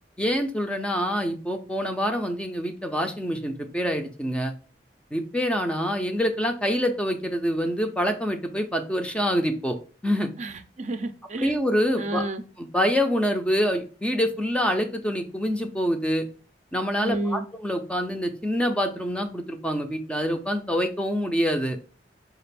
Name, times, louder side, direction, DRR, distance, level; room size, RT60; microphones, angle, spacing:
voice 1, 0.2-4.5 5.1-9.8 10.0-10.3 11.4-12.2 12.6-16.3 16.7-21.8, equal, 5° left, 0.5 m, -26 dB
voice 2, 10.4-11.6 12.0-12.4 17.0-17.4, right 2 dB, 40° right, 0.5 m, -30 dB
4.9 x 2.5 x 3.3 m
head